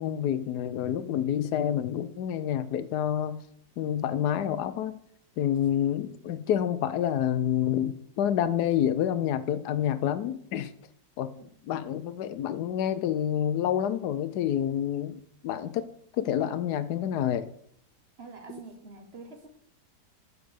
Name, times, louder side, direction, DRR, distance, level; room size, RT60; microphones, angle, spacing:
voice 1, 0.0-3.4 3.8-4.9 5.4-10.7 11.2-11.3 11.7-15.9 16.2-17.5, left 10 dB, 75° left, 13 dB, 1.2 m, -28 dB
voice 2, 18.2-19.5, right 4 dB, 40° right, 5 dB, 1.3 m, -45 dB
6.8 x 5.0 x 6.4 m, 0.65 s
omnidirectional pair, 1.8 m